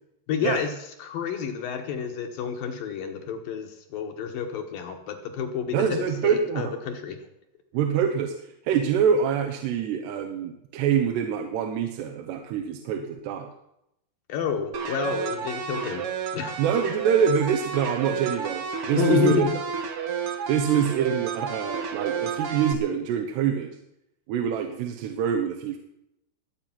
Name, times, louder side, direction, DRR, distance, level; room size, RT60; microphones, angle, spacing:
voice 1, 0.3-0.7 1.0-7.2 14.3-16.0 16.3-16.6 18.9-19.5, left 7 dB, 65° left, 4 dB, 2.7 m, -29 dB
voice 2, 5.7-6.8 7.7-13.5 16.6-19.4 20.5-23.7 24.3-25.8, right 7 dB, 80° right, 4 dB, 3.2 m, -25 dB
sound 1, 14.7-22.7, right 6 dB, 65° right, 1.4 m, -31 dB
21.5 x 8.5 x 6.0 m, 0.80 s
omnidirectional pair, 4.9 m